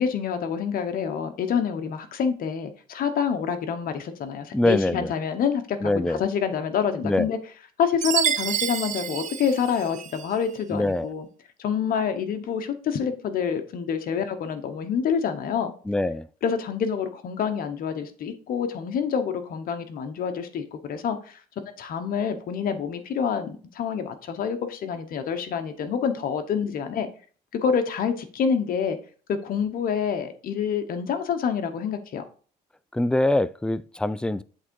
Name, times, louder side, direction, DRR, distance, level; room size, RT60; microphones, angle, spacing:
voice 1, 0.0-7.4 7.8-11.3 11.6-15.7 16.4-21.4 21.8-27.1 27.5-29.0 29.3-32.2, left 7 dB, 60° left, 1.1 m, -27 dB
voice 2, 4.5-5.1 5.8-6.2 7.0-7.3 10.7-11.1 15.9-16.3 32.9-34.4, left 1 dB, 5° left, 0.3 m, -24 dB
Chime, 8.0-10.3, right 9 dB, 50° right, 0.6 m, -28 dB
7.9 x 3.7 x 4.6 m
cardioid pair, 110°, 17 cm